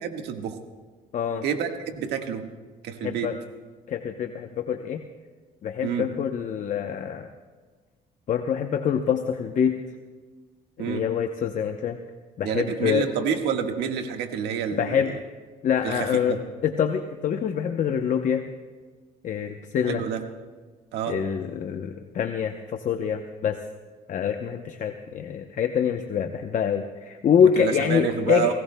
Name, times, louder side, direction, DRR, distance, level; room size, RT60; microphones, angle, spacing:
voice 1, 0.0-0.6 1.4-2.5 2.8-3.3 5.8-6.0 10.8-11.0 12.4-15.0 15.8-16.4 19.8-20.2 20.9-21.2 27.6-28.5, right 8 dB, 80° right, 5 dB, 1.6 m, -28 dB
voice 2, 1.1-1.4 3.0-3.4 3.9-5.0 5.6-7.3 8.3-9.8 10.8-12.0 12.4-13.1 14.7-15.1 15.6-18.4 19.2-20.0 21.1-23.6 24.1-28.5, left 8 dB, 50° left, 6 dB, 0.8 m, -25 dB
28.0 x 18.0 x 2.3 m, 1.4 s
cardioid pair, 110°, 17 cm